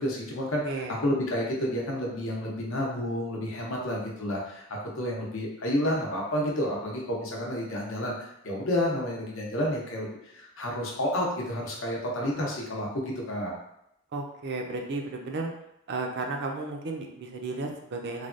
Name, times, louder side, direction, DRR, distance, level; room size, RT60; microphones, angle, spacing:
voice 1, 0.0-4.6 5.0-13.5, left 1 dB, 65° left, -2 dB, 0.7 m, -30 dB
voice 2, 0.6-1.0 14.1-15.5 15.9-18.3, right 3 dB, 50° right, 2 dB, 0.4 m, -33 dB
3.2 x 2.2 x 2.5 m, 0.80 s
head